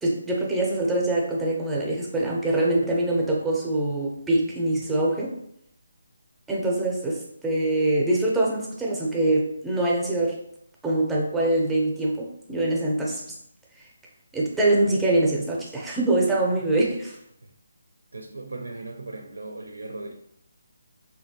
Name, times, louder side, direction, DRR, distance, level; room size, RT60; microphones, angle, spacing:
voice 1, 0.0-5.4 6.5-10.4 10.8-13.2 14.3-17.2, right 2 dB, 5° right, -3 dB, 0.6 m, -24 dB
voice 2, 18.1-20.1, right 2 dB, 75° right, 3 dB, 0.4 m, -38 dB
3.2 x 2.7 x 2.8 m, 0.73 s
figure-of-eight pair, 150°, 0 cm